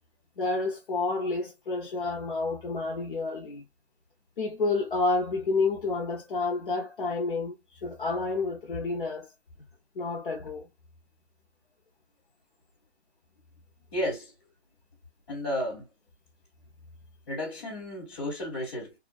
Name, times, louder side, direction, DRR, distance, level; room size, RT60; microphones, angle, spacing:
voice 1, 0.4-3.6 4.4-7.6 7.8-9.3 10.0-10.7, left 3 dB, 50° left, 0.7 m, -29 dB
voice 2, 13.9-14.3 15.3-15.9 17.3-18.9, left 1 dB, 25° left, 1.3 m, -32 dB
2.5 x 2.3 x 2.2 m
hypercardioid pair, 170°, 33 cm